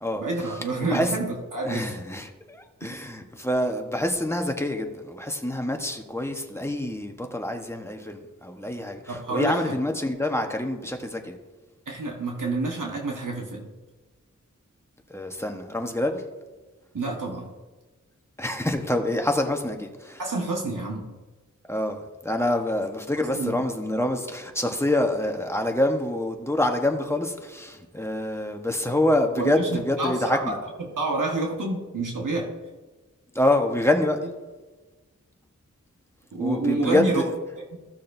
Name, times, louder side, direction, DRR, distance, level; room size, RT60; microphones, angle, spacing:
voice 1, 0.2-1.9 2.8-2.9 9.1-9.7 11.9-13.7 16.9-17.5 20.2-21.1 23.3-23.6 29.4-32.5 36.3-37.3 37.7-37.8, right 2 dB, 80° right, -1 dB, 1.5 m, -28 dB
voice 2, 1.6-11.4 15.1-16.2 18.4-20.2 21.7-30.6 33.3-34.2 36.4-37.3, left 1 dB, 10° left, 3 dB, 1.1 m, -26 dB
14.5 x 6.6 x 2.6 m, 1.2 s
wide cardioid pair, 55°, 31 cm